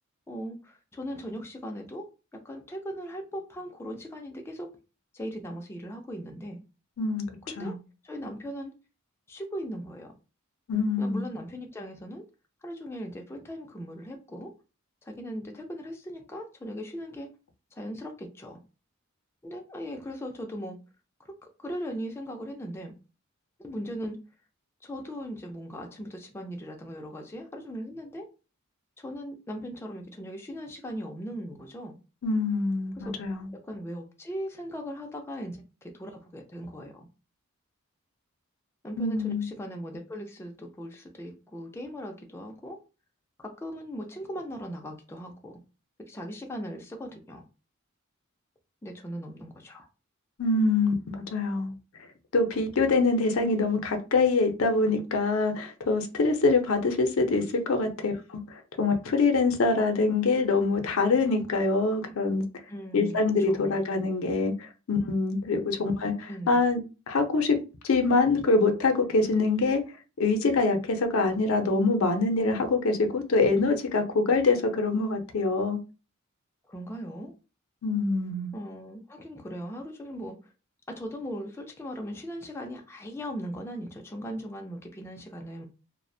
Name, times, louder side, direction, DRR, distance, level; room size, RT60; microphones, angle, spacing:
voice 1, 0.3-2.1 2.3-4.7 5.1-6.6 7.4-7.7 8.0-8.7 9.3-10.1 11.0-12.2 12.6-14.5 15.0-17.3 17.7-18.6 19.4-20.8 21.2-21.3 21.6-22.9 23.6-24.2 24.8-28.3 29.0-32.0 33.0-33.1 33.6-37.1 38.8-42.8 43.4-45.6 46.0-47.4 48.8-49.9 62.7-63.9 66.3-66.6 76.7-77.3 78.5-80.5 80.9-85.7, equal, 10° left, 0.3 m, -38 dB
voice 2, 10.7-11.2 32.2-33.5 39.0-39.5 50.4-51.7 52.3-62.4 62.9-66.8 67.1-67.6 67.8-69.8 70.2-75.8 77.8-78.5, left 3 dB, 75° left, 0.5 m, -25 dB
2.4 x 2.0 x 2.5 m
head